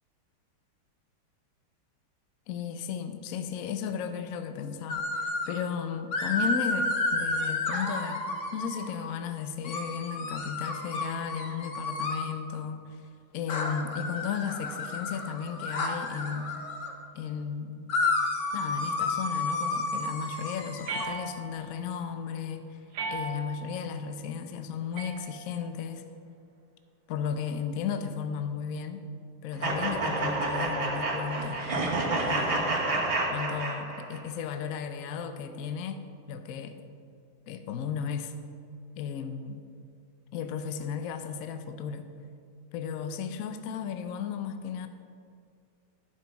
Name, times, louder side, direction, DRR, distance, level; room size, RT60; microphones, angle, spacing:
voice 1, 2.5-8.2 8.5-13.0 13.3-16.5 17.1-17.9 18.5-22.8 23.1-26.0 27.1-29.0 29.4-31.8 32.2-32.7 33.3-36.8 37.5-38.3 39.0-39.7 40.3-42.1 42.7-44.9, left 7 dB, 70° left, 8 dB, 0.8 m, -35 dB
sound 1, 4.9-5.6 6.1-8.9 9.6-12.3 13.5-16.9 17.9-21.1, left 2 dB, 50° left, 1.0 m, -31 dB
sound 2, 20.9-21.7 22.9-23.7 24.9-25.8, right 3 dB, 85° right, 2.1 m, -37 dB
sound 3, 29.6-34.2, right 2 dB, 35° right, 1.3 m, -29 dB
11.5 x 7.8 x 4.6 m, 2.3 s
omnidirectional pair, 2.3 m